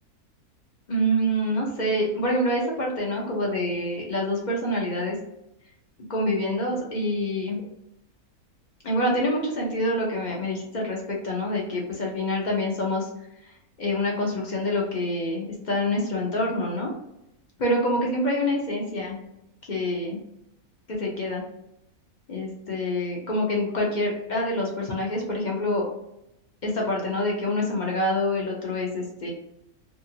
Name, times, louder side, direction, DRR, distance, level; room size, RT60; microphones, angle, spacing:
voice 1, 0.9-5.2 6.1-7.6 8.8-13.1 13.8-16.9 17.6-19.2 19.7-20.2 20.9-21.4 22.3-25.9 26.6-29.3, left 1 dB, 50° left, -2 dB, 0.6 m, -26 dB
2.7 x 2.4 x 2.7 m, 0.84 s
omnidirectional pair, 1.6 m